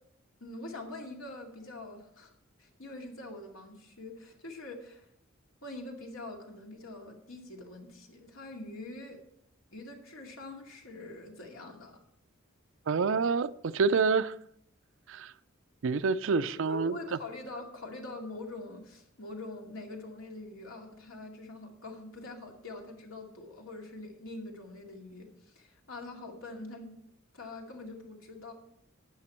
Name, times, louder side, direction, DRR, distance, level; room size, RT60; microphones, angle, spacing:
voice 1, 0.4-2.3 2.6-5.1 5.6-9.2 9.7-12.0 16.4-27.0 27.3-28.5, left 2 dB, 85° left, 2.4 m, -44 dB
voice 2, 12.9-14.3 15.1-15.3 15.8-16.9, right 5 dB, 65° right, 0.5 m, -27 dB
12.0 x 8.9 x 4.4 m
head